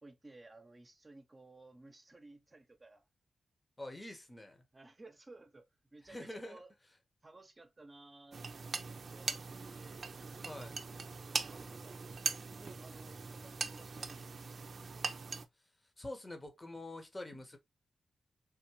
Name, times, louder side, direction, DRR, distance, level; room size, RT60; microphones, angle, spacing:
voice 1, 0.0-3.0 4.7-6.7 7.2-8.4 9.1-9.5 9.7-10.0 10.6-10.7 11.3-12.0 12.5-14.7, right 2 dB, 35° right, 0.8 m, -57 dB
voice 2, 3.8-4.6 6.1-6.6 10.4-10.7 16.0-17.6, left 1 dB, 25° left, 1.0 m, -46 dB
sound 1, 8.3-15.5, right 4 dB, 60° right, 0.5 m, -41 dB
3.6 x 2.5 x 3.0 m
cardioid pair, 50°, 0 cm